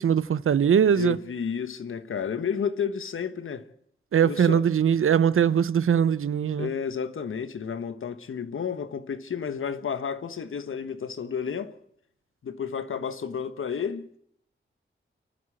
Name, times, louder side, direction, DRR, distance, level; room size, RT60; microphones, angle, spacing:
voice 1, 0.0-1.2 4.1-6.7, right 8 dB, 80° right, 0.8 m, -21 dB
voice 2, 0.9-3.7 4.2-4.6 6.6-11.7 12.4-14.1, left 7 dB, 75° left, 1.3 m, -31 dB
29.0 x 12.0 x 7.8 m
wide cardioid pair, 135°, 21 cm